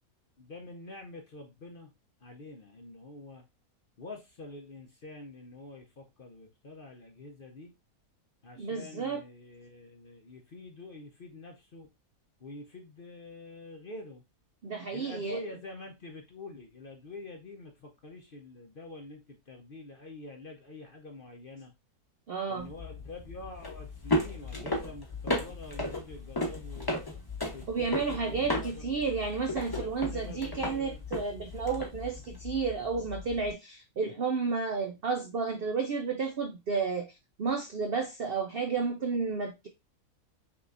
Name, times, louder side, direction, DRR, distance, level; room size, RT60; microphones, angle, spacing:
voice 1, 0.4-1.9 2.2-3.4 4.0-7.7 8.4-11.9 12.4-14.2 14.9-21.7 22.5-27.0 27.5-28.9 29.8-31.1, left 2 dB, 45° left, 0.7 m, -46 dB
voice 2, 8.6-9.2 14.6-15.4 22.3-22.7 27.7-37.1 37.4-39.7, right 5 dB, 65° right, 0.5 m, -32 dB
sound 1, 22.6-33.5, left 1 dB, 20° left, 0.8 m, -35 dB
5.8 x 3.0 x 2.5 m
omnidirectional pair, 1.6 m